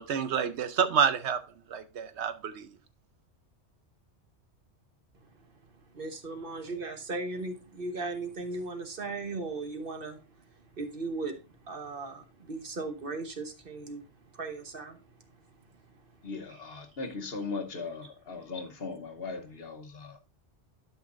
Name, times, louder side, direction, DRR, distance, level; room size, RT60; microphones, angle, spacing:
voice 1, 0.0-1.4 1.7-2.7, right 7 dB, 70° right, 0.9 m, -28 dB
voice 2, 5.9-14.1 14.3-15.3 16.0-16.6 18.0-18.1, right 3 dB, 50° right, 1.3 m, -38 dB
voice 3, 16.2-20.2, left 4 dB, 55° left, 1.2 m, -38 dB
12.0 x 5.6 x 2.5 m
omnidirectional pair, 1.2 m